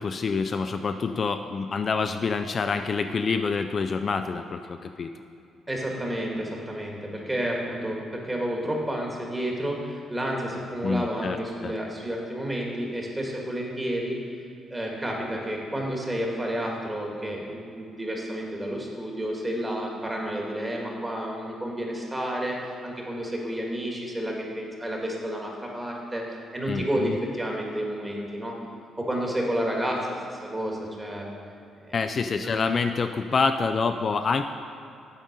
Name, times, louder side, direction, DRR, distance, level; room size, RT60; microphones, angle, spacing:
voice 1, 0.0-5.1 10.8-11.7 26.7-27.2 31.9-34.4, left 4 dB, 45° left, 7 dB, 0.3 m, -27 dB
voice 2, 5.7-14.2 14.7-28.5 29.0-31.3 32.3-32.6, equal, 15° right, -1 dB, 1.7 m, -30 dB
8.9 x 4.1 x 6.5 m, 2.6 s
cardioid pair, 90°, 0 cm